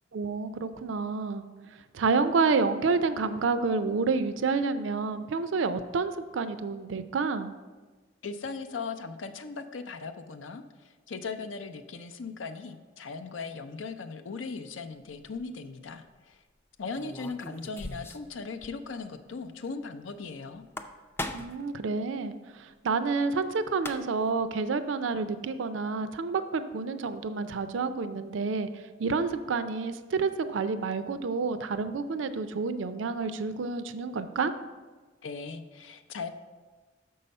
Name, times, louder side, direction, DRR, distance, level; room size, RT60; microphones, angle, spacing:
voice 1, 0.1-1.4 1.7-7.5 21.3-34.5, right 4 dB, 75° right, 11 dB, 0.4 m, -29 dB
voice 2, 8.2-16.4 16.8-20.6 35.2-36.3, left 4 dB, 85° left, 7 dB, 0.5 m, -38 dB
sound 1, 15.1-15.4 16.9-18.3 18.6-18.7 19.0-19.1 20.5-21.7 23.4-23.5 23.7-24.3, left 1 dB, 10° left, 0.3 m, -39 dB
6.6 x 5.5 x 5.3 m, 1.3 s
head